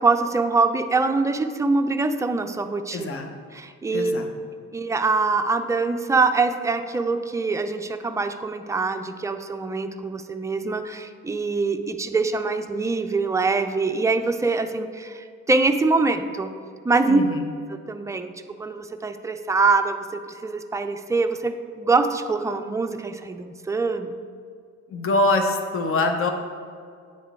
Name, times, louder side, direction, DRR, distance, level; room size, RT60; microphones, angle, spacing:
voice 1, 0.0-3.1 3.5-4.2 4.7-16.5 16.8-17.2 17.7-18.3 18.6-20.0 20.4-24.2, right 3 dB, 10° right, 7 dB, 0.3 m, -24 dB
voice 2, 2.9-3.3 3.9-4.3 17.1-17.5 24.9-26.3, left 2 dB, 45° left, 5 dB, 0.8 m, -24 dB
8.7 x 3.6 x 3.5 m, 2.2 s
cardioid pair, 90°, 30 cm